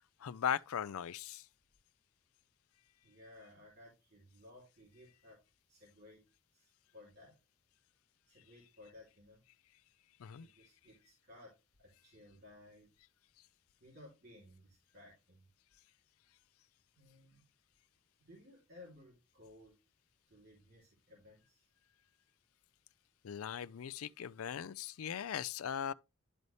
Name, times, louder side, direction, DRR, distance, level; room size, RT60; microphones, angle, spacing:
voice 1, 0.2-1.5 10.2-10.5 23.2-25.9, left 8 dB, 80° left, 0.4 m, -39 dB
voice 2, 3.0-5.4 5.7-6.2 6.5-7.3 8.3-9.4 10.4-11.5 11.8-12.9 13.8-15.5 17.0-17.4 18.2-19.7 20.3-21.6, left 1 dB, 50° right, 3.3 m, -58 dB
12.0 x 4.1 x 3.3 m
head